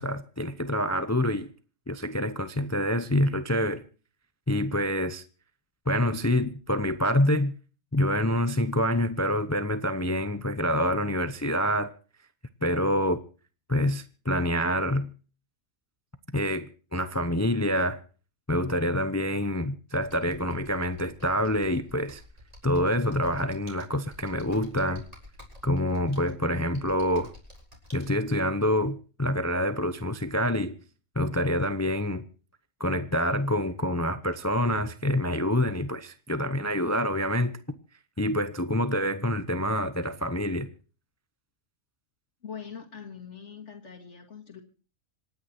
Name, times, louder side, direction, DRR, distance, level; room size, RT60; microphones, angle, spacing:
voice 1, 0.0-1.5 1.9-3.8 4.5-5.2 5.9-7.5 7.9-11.9 12.6-13.2 13.7-15.1 16.3-18.0 18.5-22.2 22.6-25.0 25.6-27.3 27.9-30.8 31.2-32.2 32.8-37.8 38.2-40.7, equal, 15° left, 0.7 m, -26 dB
Computer keyboard, 19.9-28.1, left 1 dB, 30° right, 4.5 m, -50 dB
voice 2, 42.4-44.6, left 7 dB, 60° left, 2.4 m, -42 dB
27.0 x 9.7 x 4.4 m
omnidirectional pair, 1.3 m